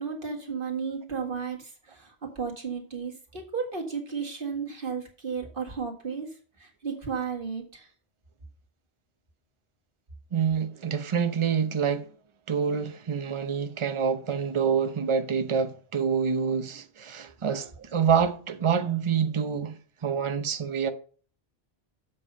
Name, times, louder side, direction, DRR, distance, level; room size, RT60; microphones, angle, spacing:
voice 1, 0.0-7.9, right 6 dB, 55° right, 2.0 m, -34 dB
voice 2, 10.3-12.1 12.5-19.8 20.0-20.9, right 7 dB, 35° right, 0.7 m, -27 dB
7.6 x 5.7 x 5.4 m
omnidirectional pair, 1.1 m